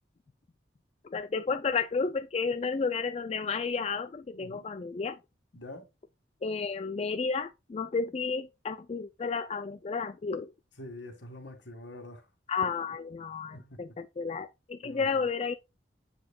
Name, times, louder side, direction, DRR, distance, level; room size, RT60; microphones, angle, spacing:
voice 1, 1.0-5.2 6.4-10.5 12.5-15.5, left 5 dB, 35° left, 0.3 m, -32 dB
voice 2, 5.6-5.9 10.8-12.2 13.5-13.7 14.8-15.0, left 1 dB, 75° left, 1.9 m, -45 dB
7.7 x 6.4 x 2.3 m
head